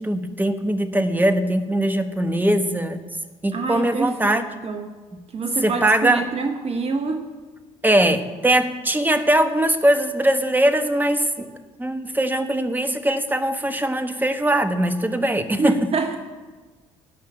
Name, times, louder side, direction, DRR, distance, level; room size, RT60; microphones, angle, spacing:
voice 1, 0.0-3.0 3.4-4.5 5.6-6.2 7.8-11.5 11.8-15.9, right 1 dB, 10° right, 8 dB, 1.4 m, -21 dB
voice 2, 3.5-4.9 5.3-7.3 15.6-16.2, right 4 dB, 40° right, 6 dB, 1.2 m, -26 dB
16.5 x 5.7 x 8.7 m, 1.3 s
hypercardioid pair, 55°, 17 cm